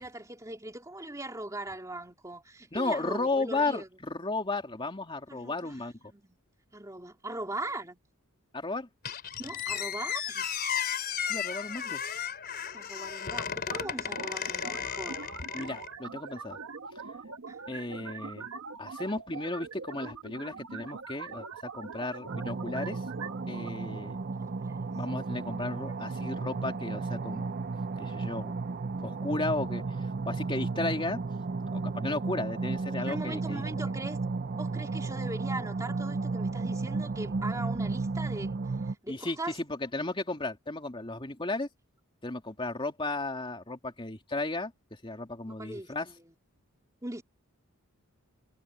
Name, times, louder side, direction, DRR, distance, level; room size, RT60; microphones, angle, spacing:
voice 1, 0.0-3.9 5.3-5.8 6.1-6.4 6.7-8.0 9.4-10.5 12.7-15.2 17.5-17.6 24.3-24.8 25.9-26.0 33.0-34.2 34.5-39.5 45.5-46.1 47.0-47.2, right 2 dB, 15° right, 2.8 m, -40 dB
voice 2, 2.7-5.9 8.5-8.9 11.3-12.0 15.5-16.6 17.7-18.5 18.8-23.0 23.5-24.2 24.9-27.6 28.0-28.5 29.0-29.8 30.3-31.2 31.7-33.9 39.1-41.7 42.2-44.7 45.0-46.1, left 2 dB, 25° left, 2.6 m, -34 dB
Squeak, 9.0-15.9, left 8 dB, 45° left, 3.8 m, -34 dB
sound 1, 13.7-23.7, right 4 dB, 70° right, 1.2 m, -43 dB
sound 2, 22.3-38.9, right 3 dB, 45° right, 0.5 m, -34 dB
head